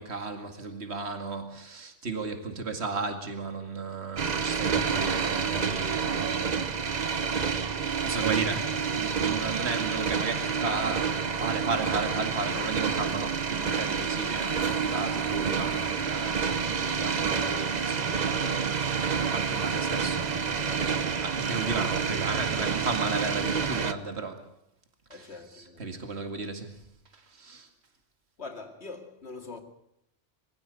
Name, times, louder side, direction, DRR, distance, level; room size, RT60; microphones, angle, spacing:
voice 1, 0.0-6.6 7.0-24.5 25.1-26.8 27.1-27.7, right 4 dB, 60° right, 2.4 m, -35 dB
sound 1, 4.2-23.9, right 6 dB, 40° right, 0.9 m, -28 dB
voice 2, 25.1-26.0 28.4-29.6, left 3 dB, 60° left, 2.6 m, -43 dB
23.0 x 15.5 x 8.2 m
omnidirectional pair, 1.2 m